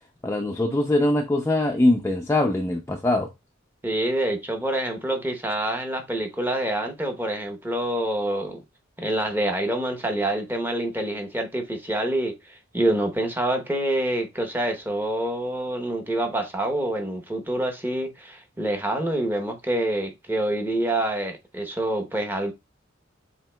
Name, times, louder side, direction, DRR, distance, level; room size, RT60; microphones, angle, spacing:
voice 1, 0.2-3.3, left 1 dB, 15° left, 0.4 m, -22 dB
voice 2, 3.8-8.6 9.0-22.5, right 1 dB, 10° right, 0.8 m, -26 dB
7.2 x 2.8 x 2.2 m
head